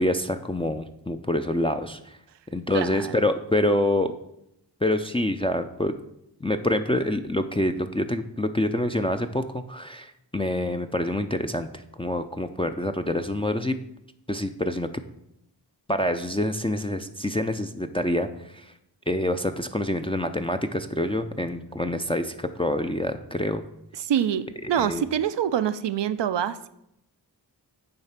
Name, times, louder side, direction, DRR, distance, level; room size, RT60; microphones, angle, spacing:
voice 1, 0.0-2.1 2.5-4.1 4.8-5.9 6.4-11.7 12.0-13.7 14.3-14.9 15.9-18.3 18.5-18.7 19.1-23.6 24.6-25.0, left 1 dB, 15° left, 6 dB, 0.5 m, -26 dB
voice 2, 2.7-3.2 24.0-26.7, right 9 dB, 80° right, 12 dB, 0.5 m, -26 dB
8.8 x 3.2 x 5.8 m, 0.80 s
cardioid pair, 40°, 42 cm